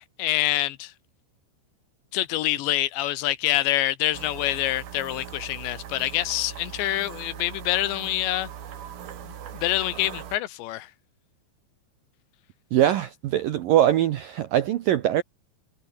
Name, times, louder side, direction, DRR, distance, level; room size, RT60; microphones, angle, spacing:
voice 1, 0.2-0.9 2.1-8.5 9.2-10.9, left 15 dB, 75° left, 3.1 m, -26 dB
sound 1, 4.1-10.4, right 9 dB, 55° right, 4.0 m, -40 dB
voice 2, 12.7-15.2, right 12 dB, 75° right, 2.0 m, -22 dB
omnidirectional pair, 5.5 m